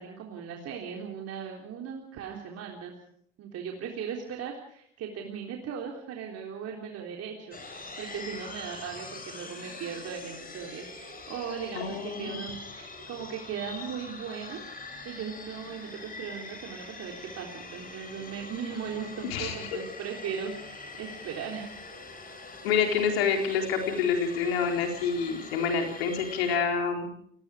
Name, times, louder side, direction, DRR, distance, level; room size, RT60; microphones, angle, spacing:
voice 1, 0.0-2.9 3.4-14.6 14.9-21.8, right 7 dB, 55° right, 0 dB, 3.6 m, -38 dB
sound 1, 7.5-26.6, left 3 dB, 30° left, 6.3 m, -44 dB
voice 2, 11.7-12.4 19.3-19.7 22.6-27.1, left 6 dB, 80° left, 3 dB, 4.2 m, -27 dB
30.0 x 18.0 x 5.0 m, 0.67 s
hypercardioid pair, 60°, 30 cm